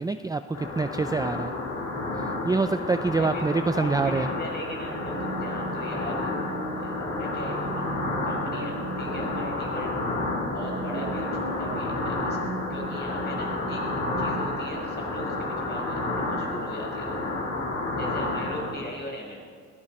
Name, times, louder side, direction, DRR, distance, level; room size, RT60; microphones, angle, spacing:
voice 1, 0.0-1.5 2.1-4.3, right 3 dB, 10° right, 10 dB, 0.4 m, -26 dB
sound 1, 0.5-18.7, left 2 dB, 75° left, 4.0 m, -30 dB
voice 2, 3.1-3.5 3.7-6.5 6.7-7.9 8.2-9.9 10.5-12.4 12.7-13.8 14.2-17.2 17.9-19.4, equal, 35° left, -1 dB, 5.6 m, -39 dB
sound 2, 4.7-14.6, right 2 dB, 70° right, 3.4 m, -38 dB
21.0 x 15.5 x 4.4 m, 2.1 s
cardioid pair, 90°, 30 cm